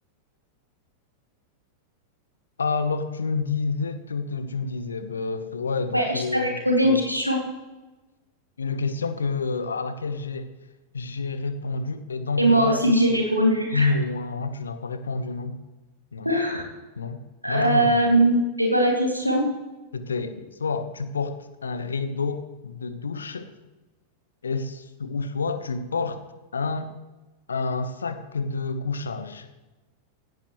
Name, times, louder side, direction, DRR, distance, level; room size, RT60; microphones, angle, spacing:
voice 1, 2.6-6.5 6.8-7.0 8.6-10.5 10.9-12.8 13.1-13.2 13.7-15.6 16.1-16.3 17.0-17.2 17.5-18.1 19.9-23.5 24.4-26.2 26.5-26.9 27.5-29.5, left 4 dB, 70° left, 10 dB, 1.2 m, -29 dB
voice 2, 5.9-7.4 12.4-13.9 16.2-16.7 17.4-19.5, right 1 dB, 90° right, 1 dB, 2.3 m, -21 dB
17.0 x 16.5 x 3.2 m, 1.1 s
figure-of-eight pair, 90°, 0 cm